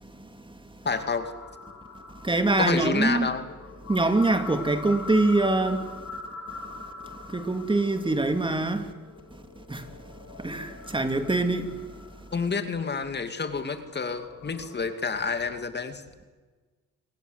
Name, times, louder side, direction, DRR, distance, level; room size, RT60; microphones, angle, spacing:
voice 1, 0.8-1.3 2.6-3.4 12.3-16.0, left 4 dB, 35° left, 2.5 m, -29 dB
sound 1, 0.9-15.6, left 4 dB, 60° left, 5.0 m, -43 dB
voice 2, 2.2-3.3 3.9-5.9 7.3-8.8 9.7-9.8 10.4-11.7, right 2 dB, 15° right, 2.4 m, -24 dB
28.5 x 20.5 x 8.1 m
cardioid pair, 90°, 30 cm